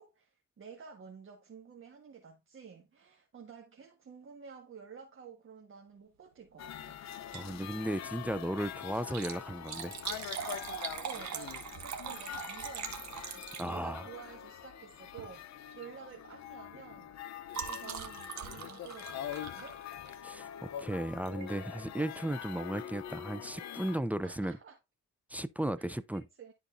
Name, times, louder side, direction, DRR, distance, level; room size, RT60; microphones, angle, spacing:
voice 1, 0.0-7.0 11.0-17.1 17.7-19.8 24.2-24.8 25.8-26.5, right 6 dB, 45° right, 1.6 m, -51 dB
sound 1, 6.6-24.0, left 10 dB, 60° left, 0.7 m, -44 dB
Liquid, 7.1-7.6 7.9-8.0 8.9-14.1 15.1-15.3 15.7-15.9 16.2-20.3 21.2-21.5 22.0-22.1 22.3-22.4, right 8 dB, 65° right, 1.5 m, -42 dB
voice 2, 7.3-9.9 13.6-14.0 20.2-24.5 25.3-26.2, right 1 dB, 5° right, 0.5 m, -35 dB
12.5 x 4.2 x 2.6 m
cardioid pair, 90°, 30 cm